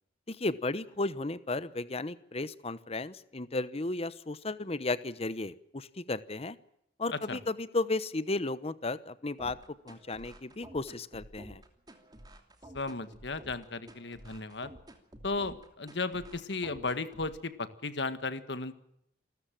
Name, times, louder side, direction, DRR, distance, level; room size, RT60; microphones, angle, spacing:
voice 1, 0.3-6.6 7.0-9.6 9.8-11.6, left 2 dB, 35° left, 15 dB, 1.0 m, -34 dB
voice 2, 7.1-7.4 12.7-14.7 15.2-18.8, left 3 dB, 65° left, 11 dB, 1.7 m, -35 dB
sound 1, 9.4-17.4, right 1 dB, 20° right, 2.8 m, -51 dB
28.0 x 14.0 x 7.6 m, 0.77 s
head